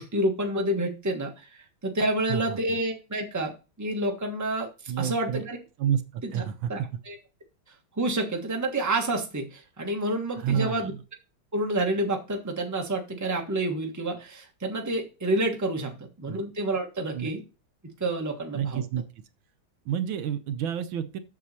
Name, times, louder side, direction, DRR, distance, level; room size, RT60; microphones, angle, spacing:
voice 1, 0.0-1.5 1.8-4.7 5.0-5.6 6.2-6.4 6.7-6.8 7.1-7.2 8.0-10.9 11.5-17.4 18.0-18.8, right 1 dB, 10° right, 2 dB, 1.2 m, -28 dB
voice 2, 2.3-2.8 4.9-5.4 5.8-6.7 10.4-11.0 16.3-16.4 17.1-17.3 18.5-19.0 19.9-21.2, right 9 dB, 75° right, 10 dB, 1.5 m, -29 dB
7.4 x 7.2 x 4.2 m, 0.31 s
omnidirectional pair, 2.2 m